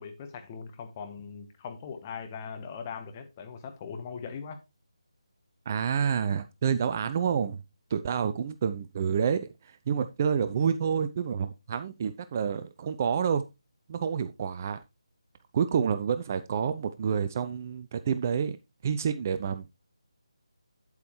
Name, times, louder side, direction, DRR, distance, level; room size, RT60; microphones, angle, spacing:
voice 1, 0.0-4.6, left 6 dB, 25° left, 1.1 m, -40 dB
voice 2, 5.7-7.6 7.9-13.4 13.9-14.8 15.5-18.6 18.8-19.7, right 7 dB, 30° right, 0.5 m, -28 dB
8.7 x 8.1 x 3.1 m
figure-of-eight pair, 155°, 3 cm